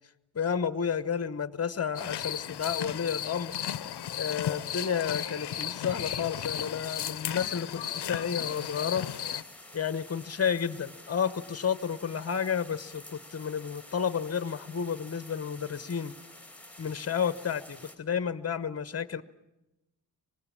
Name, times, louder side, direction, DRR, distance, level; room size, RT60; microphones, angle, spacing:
voice 1, 0.3-3.5 4.2-9.1 9.7-16.1 16.8-19.2, left 7 dB, 35° left, 15 dB, 1.0 m, -31 dB
sound 1, 2.0-9.4, left 10 dB, 75° left, 0.8 m, -35 dB
sound 2, 8.4-18.0, left 1 dB, 5° left, 2.6 m, -50 dB
25.5 x 19.5 x 8.7 m, 0.96 s
wide cardioid pair, 100°, 40 cm